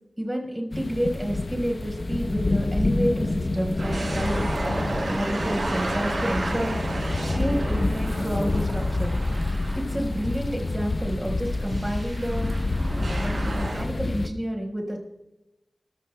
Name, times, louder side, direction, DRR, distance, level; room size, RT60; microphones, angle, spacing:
voice 1, 0.2-4.4 5.1-7.0 7.3-9.1 9.7-12.7 13.0-15.0, equal, 15° right, 0 dB, 4.5 m, -30 dB
sound 1, 0.7-14.3, left 2 dB, 50° left, 0.8 m, -28 dB
sound 2, 3.8-10.3 10.8-10.9 11.7-13.8, right 1 dB, 70° right, 5.9 m, -32 dB
24.5 x 14.5 x 2.2 m, 0.98 s
cardioid pair, 50°, 0 cm